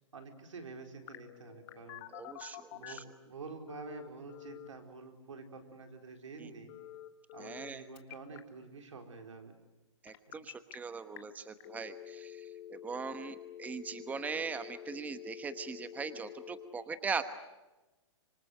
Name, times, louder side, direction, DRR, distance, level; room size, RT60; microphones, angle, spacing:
voice 1, 0.1-2.1 2.7-6.7 7.3-9.5 10.3-10.4, right 4 dB, 85° right, 5 dB, 4.5 m, -48 dB
Telephone, 1.1-3.2 3.7-4.7 6.7-7.7 8.0-8.4 10.1-10.7 11.2-11.3 11.6-16.7, left 12 dB, 35° left, 1.6 m, -48 dB
voice 2, 2.1-3.0 7.4-7.8 10.0-17.2, right 5 dB, 10° right, 11 dB, 1.1 m, -40 dB
26.0 x 25.0 x 8.0 m, 1.1 s
hypercardioid pair, 135°, 16 cm